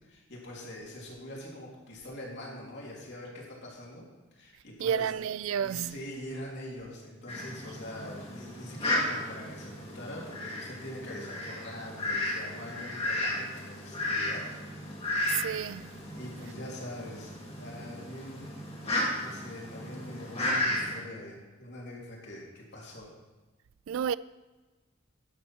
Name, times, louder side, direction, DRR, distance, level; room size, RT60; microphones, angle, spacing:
voice 1, 0.0-5.1 5.5-14.5 16.2-18.5 19.2-23.1, left 1 dB, 55° left, 3.1 m, -43 dB
voice 2, 4.8-5.9 15.3-15.9 23.9-24.2, right 8 dB, 75° right, 0.3 m, -30 dB
Fowl, 7.3-21.0, left 1 dB, 30° left, 2.0 m, -34 dB
12.0 x 8.3 x 4.5 m
head